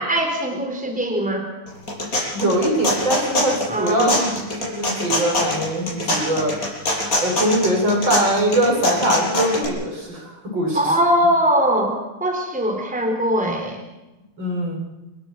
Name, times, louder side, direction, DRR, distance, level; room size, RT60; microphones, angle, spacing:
voice 1, 0.0-1.5 3.7-4.1 10.7-11.9 12.2-13.8, equal, 5° right, 2 dB, 4.2 m, -21 dB
sound 1, 1.7-9.7, left 1 dB, 40° left, 8.0 m, -23 dB
voice 2, 2.3-4.3 4.6-6.5 7.2-10.9 14.4-14.8, right 1 dB, 60° right, 0 dB, 7.7 m, -22 dB
29.5 x 16.0 x 7.9 m, 1.0 s
omnidirectional pair, 2.3 m